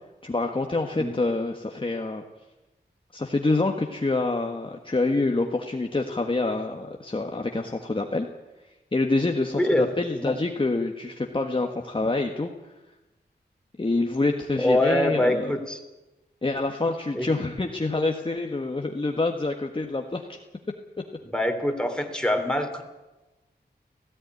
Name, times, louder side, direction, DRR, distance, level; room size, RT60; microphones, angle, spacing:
voice 1, 0.2-2.2 3.1-8.3 8.9-12.5 13.8-15.5 16.4-20.4, left 2 dB, 30° left, 2 dB, 1.5 m, -26 dB
voice 2, 14.6-15.8 17.1-17.3 21.3-22.8, left 1 dB, 5° left, 4 dB, 3.2 m, -24 dB
17.5 x 15.5 x 9.6 m, 1.0 s
wide cardioid pair, 85°, 18 cm